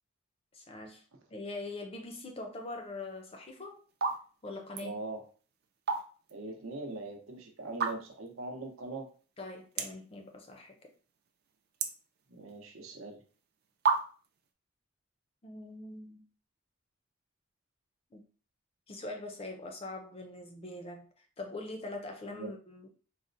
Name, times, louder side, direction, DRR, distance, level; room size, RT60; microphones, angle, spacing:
voice 1, 0.5-1.1 1.3-3.8 4.4-5.0 9.4-10.9 15.4-16.2 18.1-18.2 18.9-22.9, left 2 dB, 25° left, 0.4 m, -43 dB
sound 1, 3.2-3.4 3.9-4.2 4.5-4.9 5.6-6.4 6.7-6.8 7.7-8.3 8.8-8.9 9.1-9.2 9.7-10.1 10.5-11.0 11.3-12.6 13.3-13.4 13.8-14.4, right 5 dB, 45° right, 0.4 m, -31 dB
voice 2, 4.8-5.3 6.3-9.1 12.3-13.2 22.3-22.5, right 2 dB, 75° right, 0.7 m, -41 dB
4.1 x 2.0 x 2.5 m
head